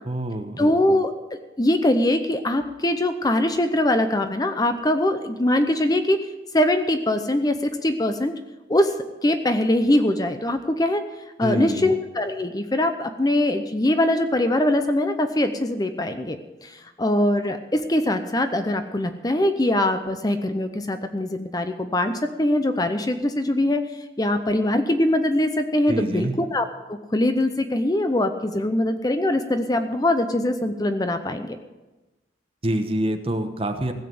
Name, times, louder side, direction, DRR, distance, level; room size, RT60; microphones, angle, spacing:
voice 1, 0.0-0.7 11.4-11.9 25.9-26.3 32.6-33.9, right 1 dB, 30° right, 6 dB, 1.1 m, -26 dB
voice 2, 0.6-6.2 6.5-8.3 8.7-8.9 9.2-11.0 11.4-23.8 24.2-31.6, left 1 dB, 20° left, 8 dB, 0.7 m, -22 dB
16.0 x 7.5 x 7.7 m, 1.1 s
head